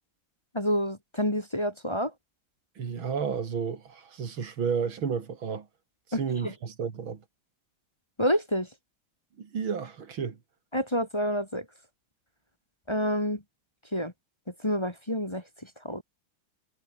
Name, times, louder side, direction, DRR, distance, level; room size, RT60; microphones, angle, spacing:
voice 1, 0.5-2.1 6.1-6.5 8.2-8.7 10.7-11.7 12.9-13.4 13.9-14.1 14.6-16.0, equal, 15° left, 2.2 m, -28 dB
voice 2, 2.8-5.7 6.1-7.2 9.4-10.4, right 6 dB, 80° right, 3.1 m, -32 dB
omnidirectional pair, 2.2 m